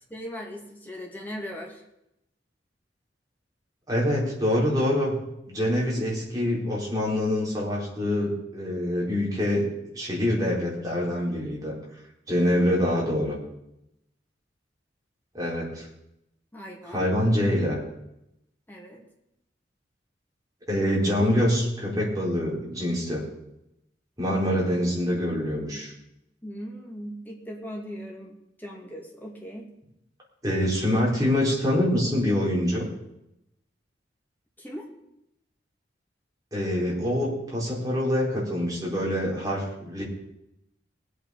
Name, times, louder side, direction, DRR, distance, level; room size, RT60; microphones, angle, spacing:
voice 1, 0.1-1.8 16.5-17.1 18.7-19.0 26.4-29.7 34.6-34.9, equal, 10° left, -1 dB, 2.5 m, -39 dB
voice 2, 3.9-5.1 5.5-9.7 9.9-11.7 12.3-13.4 15.3-15.9 16.9-17.8 20.7-23.2 24.2-25.9 30.4-32.9 36.5-40.0, left 1 dB, 20° right, -4 dB, 4.3 m, -25 dB
19.5 x 8.5 x 5.0 m, 0.85 s
head